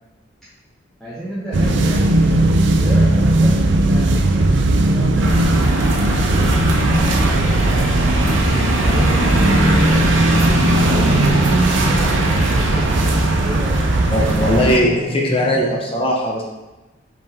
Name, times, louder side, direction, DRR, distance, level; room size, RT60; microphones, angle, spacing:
voice 1, 1.0-2.4 2.8-5.7 6.2-8.2 8.8-10.0 10.8-13.2 13.4-15.8, right 1 dB, ahead, -12 dB, 1.5 m, -31 dB
sound 1, 1.5-14.7, right 2 dB, 65° right, 0.6 m, -18 dB
sound 2, 5.2-14.8, right 1 dB, 80° right, 1.0 m, -19 dB
voice 2, 14.1-16.4, equal, 30° left, -1 dB, 0.9 m, -19 dB
5.5 x 5.4 x 3.6 m, 1.1 s
head